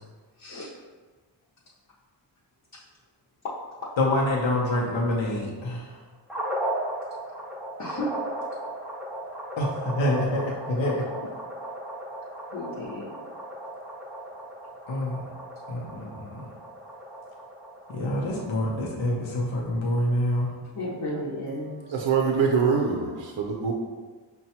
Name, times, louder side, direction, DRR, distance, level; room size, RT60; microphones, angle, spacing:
voice 1, 0.4-0.7 2.7-2.8 3.4-3.6 3.8-3.9 7.8-8.1 12.5-13.2 20.7-21.9, left 1 dB, 45° left, -7 dB, 0.7 m, -33 dB
voice 2, 4.0-6.0 9.6-11.1 14.9-15.3 15.7-16.5 17.9-20.5, left 1 dB, 85° left, -3 dB, 0.7 m, -26 dB
sound 1, 6.3-18.5, right 1 dB, 5° right, 0.5 m, -36 dB
voice 3, 21.9-23.7, right 5 dB, 80° right, 1 dB, 0.5 m, -24 dB
5.4 x 2.2 x 2.8 m, 1.4 s
wide cardioid pair, 105°, 45 cm